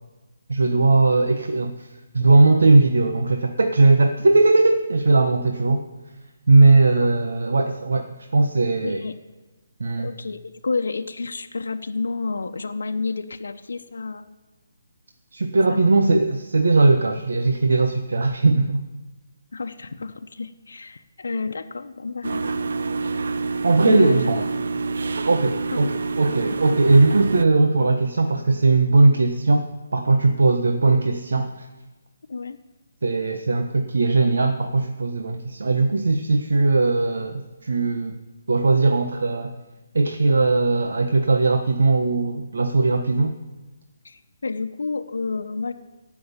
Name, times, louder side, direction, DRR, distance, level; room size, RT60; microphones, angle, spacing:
voice 1, 0.5-1.9 2.1-5.9 6.5-9.0 9.8-10.1 15.3-18.8 23.6-24.5 25.3-31.5 33.0-38.1 38.5-39.5 39.9-43.3, right 3 dB, 80° right, 5 dB, 1.3 m, -19 dB
voice 2, 6.6-7.1 8.8-9.1 10.0-14.3 15.7-15.9 19.5-22.5 23.8-24.2 25.7-25.9 32.3-32.6 44.0-45.7, left 4 dB, 85° left, 5 dB, 0.9 m, -30 dB
sound 1, 22.2-27.4, right 4 dB, 65° right, 0.7 m, -27 dB
15.0 x 6.3 x 9.7 m, 1.2 s
hypercardioid pair, 165°, 0 cm